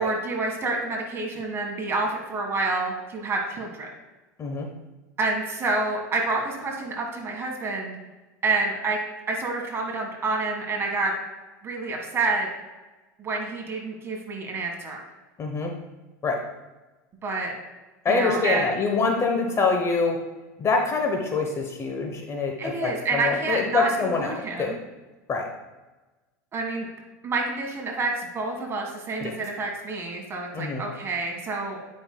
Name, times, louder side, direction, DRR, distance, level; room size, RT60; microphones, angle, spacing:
voice 1, 0.0-3.9 5.2-8.0 8.4-9.0 9.3-11.1 11.6-12.5 13.2-15.0 17.2-17.5 18.1-18.8 22.6-24.8 26.5-26.9 27.2-31.8, right 3 dB, 25° right, 1 dB, 1.7 m, -28 dB
voice 2, 15.4-15.7 16.2-16.4 18.0-20.2 20.6-24.8 25.3-25.5 29.2-29.3 30.5-30.8, left 4 dB, 30° left, 2 dB, 1.0 m, -25 dB
9.0 x 5.3 x 2.3 m, 1.2 s
hypercardioid pair, 105°, 9 cm